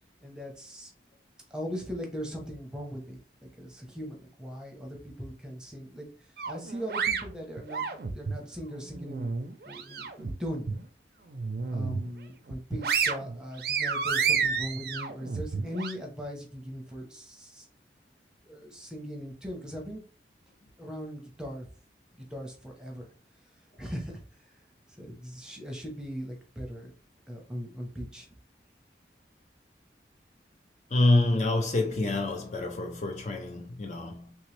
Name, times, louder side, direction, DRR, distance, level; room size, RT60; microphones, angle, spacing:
voice 1, 0.2-0.9 1.5-3.2 3.6-6.1 6.5-9.3 9.7-10.7 11.7-17.6 18.4-20.0 20.8-21.7 22.1-23.1 23.8-24.2 25.0-26.9 27.3-28.3, equal, 5° right, 0.8 m, -39 dB
sound 1, 6.4-8.4 8.8-10.3 10.7-10.8 11.3-12.1 12.5-15.9, right 5 dB, 55° right, 0.5 m, -30 dB
voice 2, 30.9-34.4, left 2 dB, 40° left, 0.5 m, -27 dB
3.2 x 3.0 x 3.2 m
head